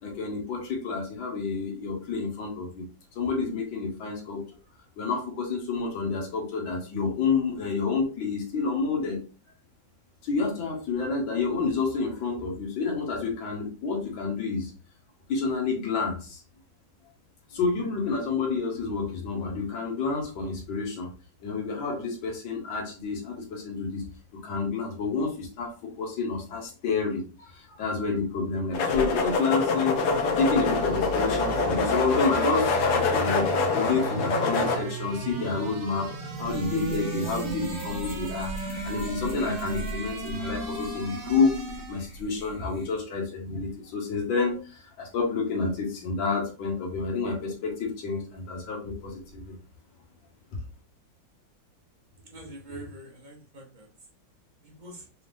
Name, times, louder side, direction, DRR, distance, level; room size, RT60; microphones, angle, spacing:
voice 1, 0.0-2.9 3.2-4.5 5.0-9.2 10.2-14.7 15.3-16.4 17.5-21.1 21.4-24.1 24.4-30.0 30.4-41.6 41.9-49.6, left 4 dB, 80° left, -1 dB, 1.9 m, -29 dB
sound 1, 28.7-34.8, left 3 dB, 65° left, 1.2 m, -25 dB
sound 2, 30.0-42.1, right 3 dB, 75° right, 1.5 m, -36 dB
sound 3, 36.3-43.0, right 1 dB, 45° left, 1.7 m, -40 dB
voice 2, 52.1-53.9 54.6-55.1, right 1 dB, 35° right, 0 dB, 0.8 m, -44 dB
4.1 x 3.3 x 2.6 m, 0.36 s
omnidirectional pair, 2.1 m